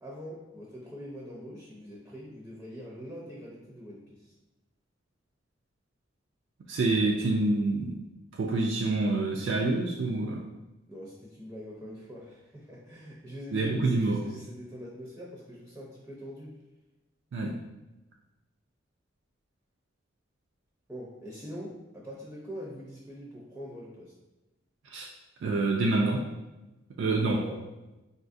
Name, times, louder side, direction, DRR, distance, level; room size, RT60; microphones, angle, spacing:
voice 1, 0.0-4.3 10.9-16.6 20.9-24.1 27.2-27.6, equal, 10° right, -5 dB, 0.5 m, -43 dB
voice 2, 6.7-8.0 8.3-10.4 13.5-14.2 17.3-17.6 24.9-25.1 25.4-26.3 27.0-27.4, right 2 dB, 70° right, 0 dB, 0.3 m, -27 dB
3.9 x 2.5 x 2.4 m, 1.0 s
head